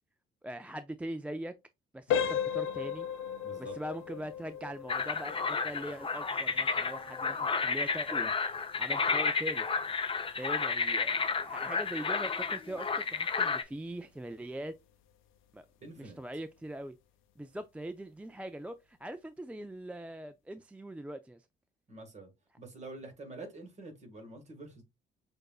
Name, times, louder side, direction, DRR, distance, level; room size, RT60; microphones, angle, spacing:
voice 1, 0.4-1.5 1.9-3.1 3.6-8.3 8.8-9.7 10.4-11.1 11.4-14.7 15.5-15.7 16.0-17.0 17.4-21.5, right 1 dB, 5° right, 0.3 m, -41 dB
sound 1, 2.1-12.8 13.1-13.3 13.9-14.0 14.5-14.7, left 8 dB, 90° left, 0.7 m, -38 dB
voice 2, 3.4-3.8 15.8-16.2 21.9-22.3 22.6-24.8, right 3 dB, 35° right, 1.8 m, -47 dB
sound 2, 4.9-13.6, left 5 dB, 25° left, 0.6 m, -31 dB
6.5 x 2.5 x 2.3 m
cardioid pair, 90°, 20 cm